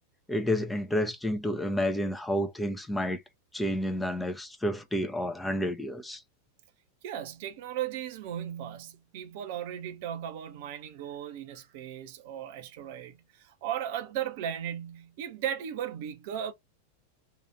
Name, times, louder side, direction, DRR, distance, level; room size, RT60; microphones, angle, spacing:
voice 1, 0.3-3.2 3.5-6.2, equal, 5° left, 0.5 m, -30 dB
voice 2, 7.0-16.5, right 10 dB, 50° right, 0.6 m, -36 dB
2.8 x 2.4 x 3.1 m
figure-of-eight pair, 90°, 0 cm